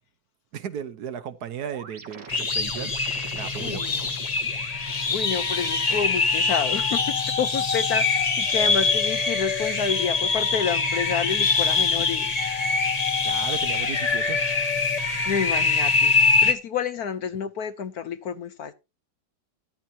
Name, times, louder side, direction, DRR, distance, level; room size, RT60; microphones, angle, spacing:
voice 1, 0.5-2.9 3.3-3.9 13.2-14.4, right 8 dB, 65° right, 1.3 m, -35 dB
sound 1, 1.6-6.6, right 5 dB, 85° right, 2.5 m, -44 dB
sound 2, 2.3-16.5, left 4 dB, 30° left, 0.8 m, -24 dB
voice 2, 3.6-4.1 5.1-12.3 15.0-16.1 16.4-18.7, left 7 dB, 65° left, 1.1 m, -29 dB
13.5 x 10.5 x 2.8 m
omnidirectional pair, 2.0 m